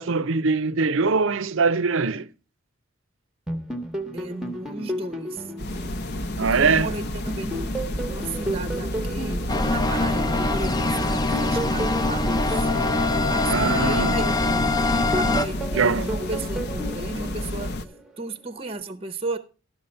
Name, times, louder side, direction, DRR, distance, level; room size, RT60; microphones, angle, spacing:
voice 1, 0.0-2.3 6.4-6.9 13.5-14.2 15.7-16.1, right 4 dB, 65° right, 0.6 m, -22 dB
sound 1, 3.5-6.8 7.3-10.5 11.1-14.4 14.9-18.1, right 1 dB, ahead, 0.9 m, -33 dB
voice 2, 4.1-5.5 6.4-7.7 8.1-12.7 13.3-17.7 18.2-19.4, right 2 dB, 25° right, 0.7 m, -34 dB
sound 2, 5.6-17.9, left 1 dB, 50° left, 0.7 m, -31 dB
sound 3, 9.5-15.5, left 2 dB, 20° left, 0.6 m, -23 dB
12.0 x 6.3 x 5.3 m
head